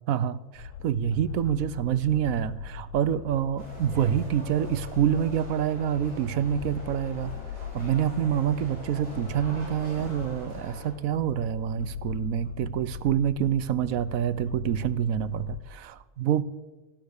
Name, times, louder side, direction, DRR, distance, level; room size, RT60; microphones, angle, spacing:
voice 1, 0.1-7.3 7.6-16.4, right 9 dB, 70° right, 15 dB, 1.1 m, -27 dB
sound 1, 0.5-15.6, left 7 dB, 65° left, 1.3 m, -41 dB
sound 2, 3.6-10.9, equal, 25° left, 6.0 m, -44 dB
15.0 x 12.0 x 6.5 m, 1.2 s
omnidirectional pair, 1.5 m